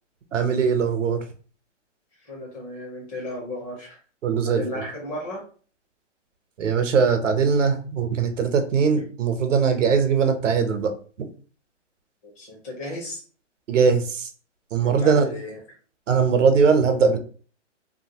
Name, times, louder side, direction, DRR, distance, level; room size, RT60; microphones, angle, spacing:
voice 1, 0.3-1.2 4.2-4.8 6.6-10.9 13.7-14.3 14.7-15.3 16.1-17.2, right 5 dB, 80° right, 7 dB, 0.8 m, -20 dB
voice 2, 2.2-4.0 4.4-5.4 12.2-13.2 14.8-15.6, left 1 dB, 10° left, -2 dB, 0.5 m, -34 dB
2.8 x 2.7 x 2.7 m, 0.40 s
hypercardioid pair, 150°, 36 cm